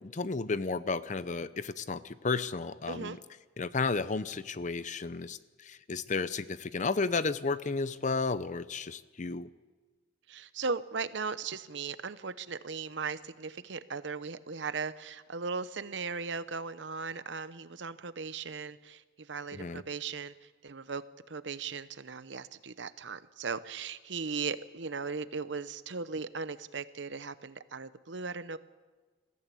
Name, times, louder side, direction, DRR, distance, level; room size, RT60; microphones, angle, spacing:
voice 1, 0.0-3.2 3.6-9.5 19.5-19.8, left 4 dB, 40° left, 15 dB, 0.6 m, -33 dB
voice 2, 2.9-3.2 10.3-28.6, right 5 dB, 65° right, 14 dB, 0.8 m, -38 dB
20.5 x 15.0 x 8.4 m, 1.4 s
head